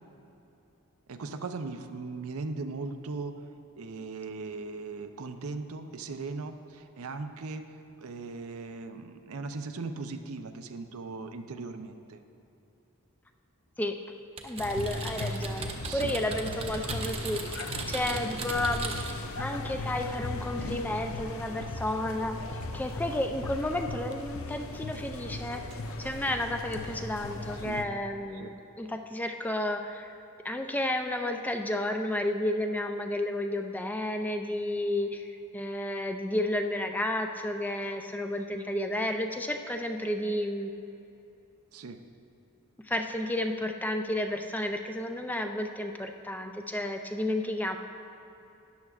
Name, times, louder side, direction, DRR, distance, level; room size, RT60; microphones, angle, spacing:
voice 1, 1.1-3.3 3.8-7.6 8.0-12.2 15.8-16.2 27.6-27.9 28.4-28.5 41.7-42.0, right 3 dB, 90° right, 8 dB, 0.6 m, -38 dB
voice 2, 14.4-25.7 26.0-28.5 28.8-30.2 30.4-40.7 42.9-47.8, left 1 dB, 10° left, 5 dB, 0.3 m, -32 dB
Typing, 14.4-19.3, right 4 dB, 30° right, 0.7 m, -38 dB
sound 1, 14.6-27.8, left 2 dB, 70° left, 0.6 m, -38 dB
sound 2, 19.7-26.2, equal, 70° right, 1.4 m, -50 dB
13.0 x 10.5 x 2.4 m, 2.9 s
head